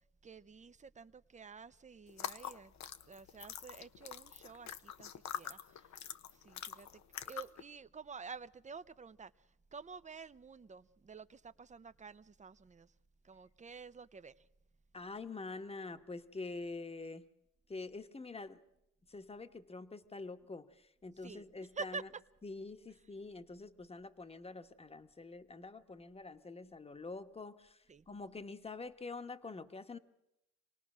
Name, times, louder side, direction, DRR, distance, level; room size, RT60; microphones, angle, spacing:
voice 1, 0.2-2.7 3.0-6.0 6.3-12.9 13.2-14.5 21.2-21.4 21.7-22.2 27.9-28.1, right 5 dB, 25° right, 0.7 m, -50 dB
sound 1, 2.1-7.6, left 9 dB, 65° left, 0.9 m, -45 dB
voice 2, 14.9-17.2 17.7-18.6 19.1-22.1 22.4-30.0, left 3 dB, 20° left, 1.3 m, -46 dB
26.5 x 18.5 x 6.2 m
cardioid pair, 90°, 30 cm